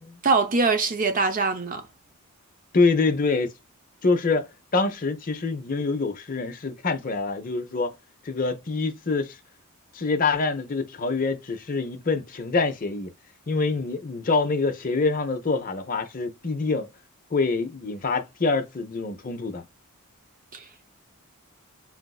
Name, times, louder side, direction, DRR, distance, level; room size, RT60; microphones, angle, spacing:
voice 1, 0.2-1.8 20.5-20.6, right 4 dB, 35° right, 0.5 m, -23 dB
voice 2, 2.7-3.5 4.0-7.9 8.2-9.4 9.9-13.1 13.5-16.9 17.3-19.6, left 3 dB, 40° left, 0.6 m, -25 dB
3.9 x 2.5 x 2.3 m
head